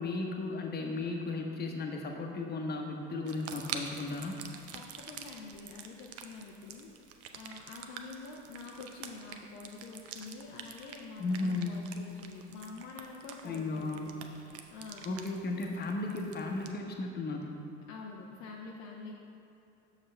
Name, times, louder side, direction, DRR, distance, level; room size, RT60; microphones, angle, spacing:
voice 1, 0.0-4.4 11.2-11.7 13.4-14.1 15.0-17.5, left 3 dB, 30° left, 2 dB, 1.0 m, -35 dB
sound 1, 3.3-16.7, right 7 dB, 45° right, 0.6 m, -47 dB
voice 2, 4.7-15.1 17.9-19.1, left 4 dB, 55° left, -1 dB, 0.6 m, -47 dB
7.3 x 6.4 x 3.3 m, 2.8 s
figure-of-eight pair, 55°, 34 cm